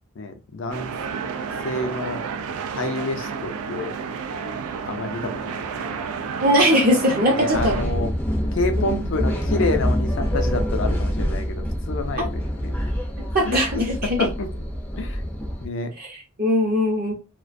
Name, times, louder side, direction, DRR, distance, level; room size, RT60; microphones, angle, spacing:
voice 1, 0.2-0.9 1.6-2.2 2.7-3.9 4.8-6.4 7.3-8.1 8.5-12.7 13.4-14.5 14.9-15.2 15.6-15.9, left 3 dB, 60° left, 0.5 m, -29 dB
sound 1, 0.7-7.8, right 5 dB, 90° right, 0.3 m, -31 dB
voice 2, 6.4-7.8 8.8-9.0 12.2-12.3 13.3-14.3 16.0-17.1, equal, 40° right, 0.6 m, -20 dB
sound 2, 7.5-15.7, equal, 10° left, 0.5 m, -26 dB
2.4 x 2.1 x 2.4 m
head